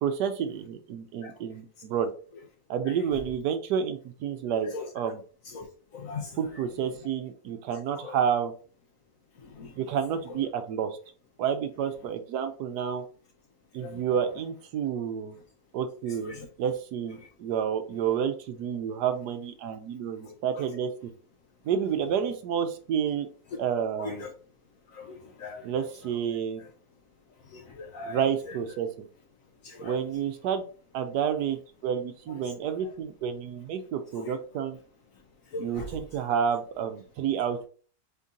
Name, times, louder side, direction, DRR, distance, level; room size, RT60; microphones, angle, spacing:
voice 1, 0.0-2.1 2.7-4.7 4.9-5.2 6.4-8.5 9.8-11.0 11.4-13.0 13.7-15.4 15.7-20.9 21.6-23.3 23.6-24.3 25.6-26.6 28.1-29.1 29.8-30.6 30.9-34.8 35.6-37.7, right 8 dB, 75° right, 8 dB, 1.1 m, -30 dB
voice 2, 5.9-6.4 8.0-8.1 9.4-9.7 13.8-14.0 16.3-16.5 17.2-17.3 20.2-20.6 23.5-23.6 24.0-24.3 24.9-25.7 27.5-28.2 29.6-29.9 34.2-34.3 35.5-35.9, left 4 dB, 60° left, 3 dB, 0.9 m, -39 dB
4.4 x 2.7 x 3.6 m, 0.40 s
omnidirectional pair, 1.9 m